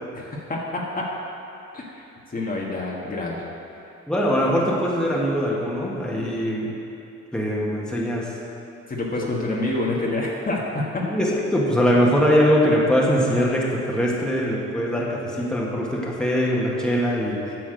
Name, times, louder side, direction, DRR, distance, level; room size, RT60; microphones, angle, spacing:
voice 1, 0.1-0.8 1.7-1.9 2.3-3.4 8.9-11.0, left 2 dB, 30° left, -3 dB, 1.6 m, -27 dB
voice 2, 4.1-6.7 7.3-8.3 9.2-9.3 11.0-17.6, equal, 5° left, -4 dB, 1.8 m, -22 dB
9.0 x 6.1 x 7.8 m, 2.7 s
cardioid pair, 90°, 30 cm